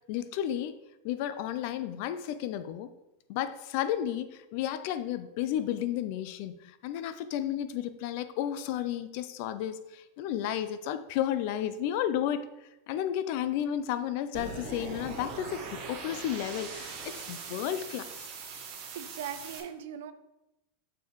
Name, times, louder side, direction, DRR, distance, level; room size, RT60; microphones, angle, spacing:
voice 1, 0.1-0.7 1.0-2.9 3.3-6.6 6.8-12.5 12.9-18.1, left 11 dB, 45° left, 12 dB, 0.4 m, -32 dB
sound 1, 14.3-19.6, right 4 dB, 35° right, 1.0 m, -41 dB
voice 2, 18.9-20.1, right 8 dB, 70° right, 12 dB, 0.5 m, -39 dB
6.9 x 5.3 x 3.1 m, 0.94 s
supercardioid pair, 170°, 0 cm